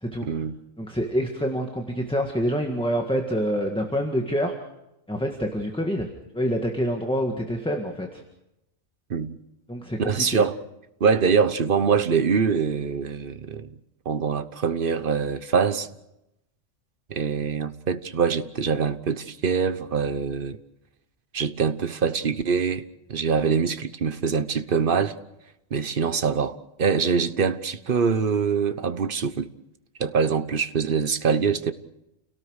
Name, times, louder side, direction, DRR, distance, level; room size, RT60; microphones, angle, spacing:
voice 1, 0.2-0.6 9.1-9.4 10.0-10.6 11.0-13.7 14.0-15.9 17.1-20.6 21.3-22.8 23.1-25.2 25.7-29.5 30.0-31.7, right 6 dB, 45° right, 1.2 m, -24 dB
voice 2, 0.8-4.5 5.1-6.1 6.3-8.2 9.7-10.4, equal, 5° left, 1.8 m, -26 dB
29.5 x 18.0 x 6.5 m
omnidirectional pair, 1.3 m